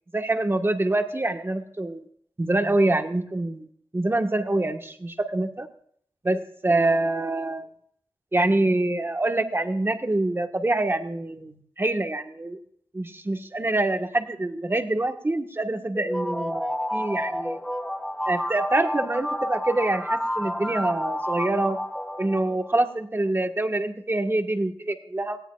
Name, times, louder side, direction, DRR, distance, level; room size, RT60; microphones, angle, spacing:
voice 1, 0.1-2.0 2.4-3.6 3.9-5.7 6.2-7.6 8.3-12.6 12.9-17.6 18.3-21.8 22.2-25.4, right 2 dB, 25° right, 5 dB, 1.6 m, -25 dB
sound 1, 15.9-22.8, equal, 5° left, 1.0 m, -30 dB
19.0 x 17.0 x 2.5 m, 0.64 s
wide cardioid pair, 105°, 9 cm